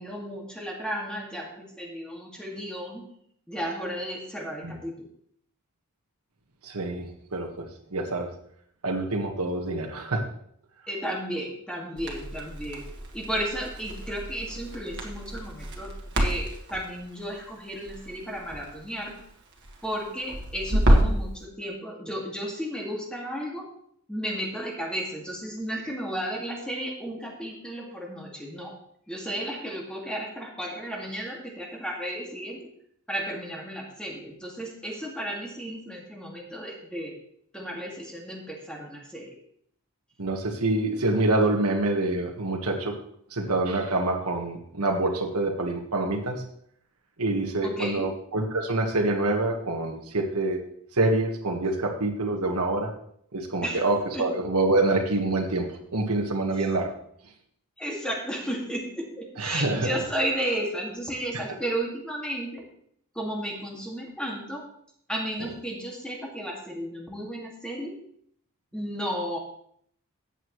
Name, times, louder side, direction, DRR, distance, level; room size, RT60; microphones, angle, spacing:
voice 1, 0.0-3.0 3.5-5.1 10.9-12.8 13.1-19.1 19.8-23.7 24.1-28.7 29.1-32.6 33.1-37.2 37.5-39.3 47.6-48.1 53.6-53.9 54.1-54.2 57.8-62.6 63.2-64.6 65.1-67.9 68.7-69.4, equal, 5° left, -2 dB, 2.1 m, -33 dB
voice 2, 6.6-7.6 7.9-8.3 8.8-10.2 40.2-42.9 43.3-46.4 47.2-50.6 50.9-52.9 53.3-56.9 59.4-60.0 61.3-61.4 65.4-65.5, right 2 dB, 85° right, 2 dB, 1.5 m, -26 dB
Crackle, 12.0-21.3, equal, 50° right, 1.8 m, -28 dB
14.0 x 8.9 x 3.2 m, 0.67 s
head